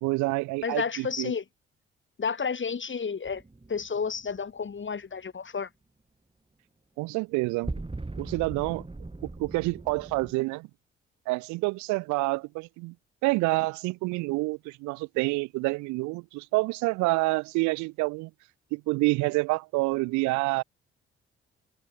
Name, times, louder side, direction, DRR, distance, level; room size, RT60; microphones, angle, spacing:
voice 1, 0.0-1.3 7.0-7.7 8.2-8.8 9.4-10.7 11.3-12.9 13.2-18.3 18.7-20.6, right 24 dB, 70° right, 1.4 m, -28 dB
voice 2, 0.6-1.4 2.2-3.4 3.7-5.7, left 5 dB, 40° left, 6.1 m, -31 dB
sound 1, 3.3-4.7 7.6-10.3, right 2 dB, 20° right, 3.7 m, -39 dB
hypercardioid pair, 45°, 30 cm